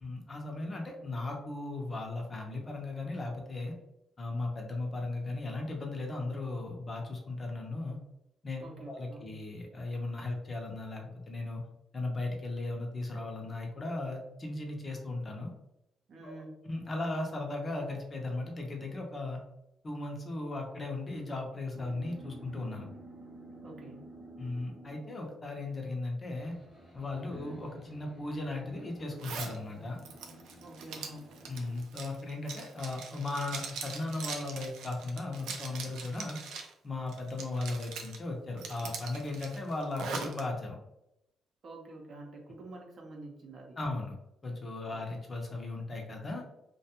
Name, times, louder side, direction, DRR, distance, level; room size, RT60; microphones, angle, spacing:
voice 1, 0.0-3.7 4.2-8.0 8.4-11.6 11.9-15.5 16.2-19.4 19.8-22.9 24.4-26.6 26.9-30.0 31.5-36.4 36.8-40.7 43.8-44.1 44.4-46.4, left 2 dB, 30° left, 1 dB, 0.6 m, -37 dB
voice 2, 8.6-9.3 16.1-16.6 23.6-24.1 27.3-27.6 30.6-31.3 41.6-43.8 44.9-45.2, right 2 dB, 55° right, 0 dB, 0.7 m, -48 dB
sound 1, 21.7-25.3 26.3-31.8, right 1 dB, 10° right, 0.8 m, -52 dB
Zipper (clothing), 29.2-29.6 30.0-36.7 37.1-38.2 38.6-40.4, right 5 dB, 90° right, 0.4 m, -41 dB
2.4 x 2.2 x 2.8 m, 0.85 s
cardioid pair, 100°, 0 cm